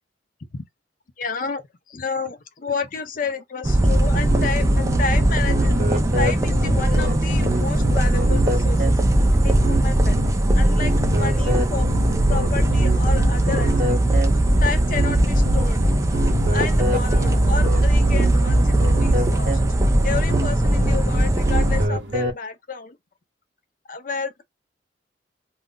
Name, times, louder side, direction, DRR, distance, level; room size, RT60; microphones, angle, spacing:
voice 1, 1.2-1.6 1.9-5.7 6.1-8.9 9.4-10.2 10.5-14.0 14.6-15.8 16.5-18.7 19.0-19.8 20.0-23.0 23.9-24.4, left 5 dB, 50° left, 0.6 m, -31 dB
sound 1, 3.6-21.9, right 1 dB, 15° right, 0.4 m, -20 dB
sound 2, 3.6-22.3, right 1 dB, 75° right, 0.7 m, -41 dB
sound 3, 3.8-22.3, equal, 45° right, 1.0 m, -24 dB
2.4 x 2.0 x 3.6 m
head